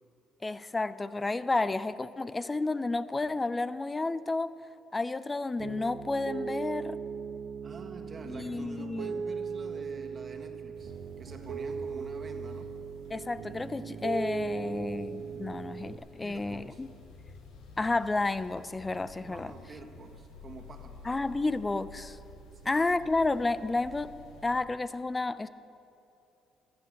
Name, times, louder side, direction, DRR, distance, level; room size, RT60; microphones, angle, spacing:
voice 1, 0.4-4.5 4.9-7.0 8.2-9.2 13.1-16.9 17.8-19.5 21.1-22.2 22.7-24.1 24.4-25.5, left 3 dB, 25° left, 15 dB, 0.5 m, -31 dB
Piano, 5.6-16.0, right 6 dB, 75° right, 0.8 m, -38 dB
voice 2, 7.6-12.7 16.1-16.8 19.2-21.1 22.5-22.8, right 4 dB, 45° right, 4 dB, 1.7 m, -47 dB
sound 1, 10.7-24.6, left 3 dB, 80° left, 1.7 m, -51 dB
15.0 x 9.7 x 6.6 m, 2.7 s
supercardioid pair, 65°, 0 cm